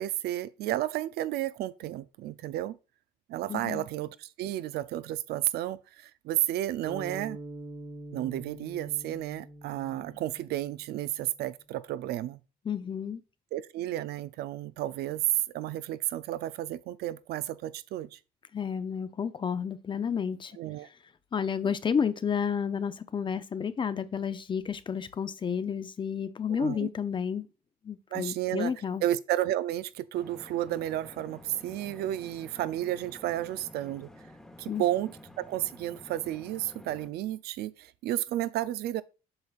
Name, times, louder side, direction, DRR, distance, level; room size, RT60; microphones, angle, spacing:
voice 1, 0.0-2.8 3.3-7.4 8.1-12.4 13.5-15.2 15.5-18.2 20.5-20.9 21.6-21.7 26.5-26.9 28.1-34.1 34.6-39.0, right 13 dB, 70° right, 0.4 m, -32 dB
voice 2, 3.5-3.9 12.7-13.2 18.5-20.6 21.3-27.5 27.8-29.0 34.7-34.8, left 7 dB, 30° left, 0.5 m, -31 dB
sound 1, 6.8-11.1, right 2 dB, 50° right, 1.6 m, -44 dB
sound 2, 30.1-37.1, left 1 dB, 5° left, 1.0 m, -51 dB
7.8 x 5.6 x 2.4 m
cardioid pair, 110°, 17 cm